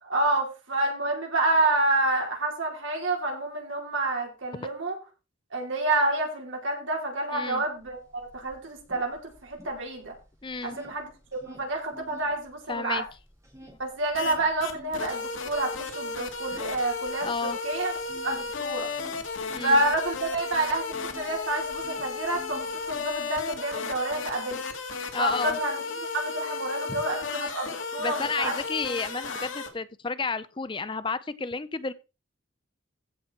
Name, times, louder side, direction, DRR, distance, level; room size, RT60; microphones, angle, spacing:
voice 1, 0.0-5.0 5.5-10.1 10.6-11.1 11.5-13.0 13.8-17.9 18.2-18.9 19.6-24.6 25.2-25.9 26.1-28.6, right 2 dB, 75° right, 4.6 m, -28 dB
voice 2, 7.3-7.6 10.4-10.8 12.7-13.0 17.2-17.6 19.5-19.8 25.1-25.6 28.0-31.9, left 4 dB, 25° left, 0.5 m, -31 dB
sound 1, 7.8-7.9 8.2-10.2 10.5-12.3 12.7-21.4 21.6-23.2, equal, 15° right, 3.5 m, -49 dB
sound 2, 14.1-14.3 14.6-29.7, left 4 dB, 80° left, 2.2 m, -34 dB
15.5 x 6.2 x 4.5 m
head